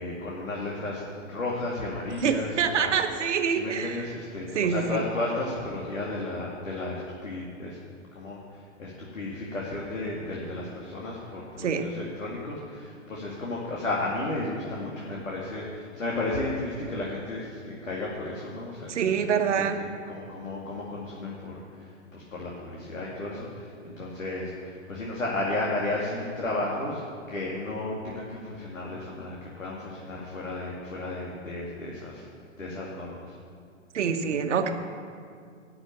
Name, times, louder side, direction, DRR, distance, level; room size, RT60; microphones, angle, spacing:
voice 1, 0.0-2.9 3.5-7.8 8.1-19.1 19.5-27.0 27.3-32.3 32.6-33.3, left 2 dB, 85° left, -4 dB, 2.5 m, -33 dB
voice 2, 2.2-4.1 4.5-5.0 11.6-11.9 18.9-19.8 33.9-34.7, right 7 dB, 65° right, 7 dB, 1.3 m, -26 dB
12.0 x 6.3 x 8.9 m, 2.3 s
hypercardioid pair, 125°, 39 cm